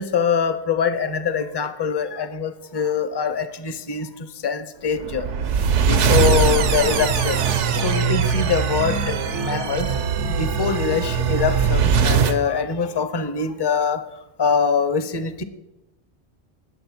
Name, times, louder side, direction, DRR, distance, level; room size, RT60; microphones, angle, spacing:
voice 1, 0.0-4.1 4.4-5.2 5.9-7.4 7.8-9.0 9.3-9.9 10.4-14.0 14.4-15.4, left 6 dB, 25° left, 11 dB, 0.6 m, -23 dB
sound 1, 5.0-12.4, right 6 dB, 85° right, 1.1 m, -21 dB
19.5 x 6.8 x 4.3 m, 0.98 s
omnidirectional pair, 1.2 m